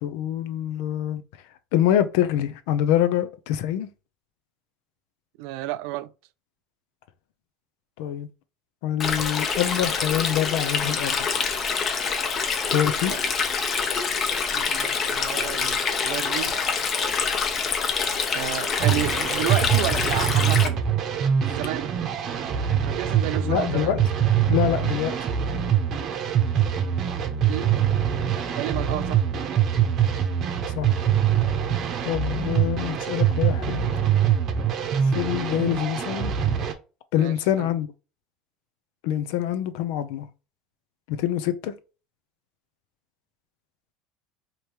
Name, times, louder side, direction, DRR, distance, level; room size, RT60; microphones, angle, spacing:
voice 1, 0.0-1.2 1.7-3.9 8.0-8.3 8.8-11.2 12.7-13.2 23.4-24.0 24.5-25.2 30.7-30.9 32.0-33.9 35.0-36.3 37.1-37.9 39.0-40.2 41.1-41.7, left 11 dB, 75° left, 0.6 m, -25 dB
voice 2, 5.4-6.1 13.1-13.2 14.5-16.6 18.3-20.9 21.4-21.9 22.9-24.0 27.2-27.8 28.5-29.3 37.1-37.7, right 14 dB, 70° right, 0.3 m, -32 dB
Stream, 9.0-20.7, left 5 dB, 30° left, 0.8 m, -26 dB
sound 1, 18.8-36.7, right 9 dB, 40° right, 0.8 m, -24 dB
5.1 x 3.0 x 3.0 m
cardioid pair, 155°, 0 cm